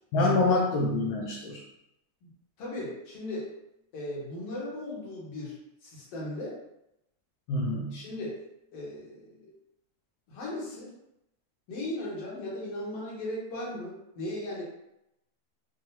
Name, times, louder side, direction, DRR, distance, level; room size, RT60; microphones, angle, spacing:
voice 1, 0.1-1.6 7.5-8.0, left 2 dB, 75° left, -3 dB, 1.5 m, -26 dB
voice 2, 2.6-3.5 3.9-6.6 7.9-8.5 8.7-9.5 10.3-10.9 11.7-14.6, left 1 dB, 60° left, -5 dB, 2.0 m, -37 dB
5.5 x 2.4 x 2.8 m, 0.84 s
omnidirectional pair, 3.5 m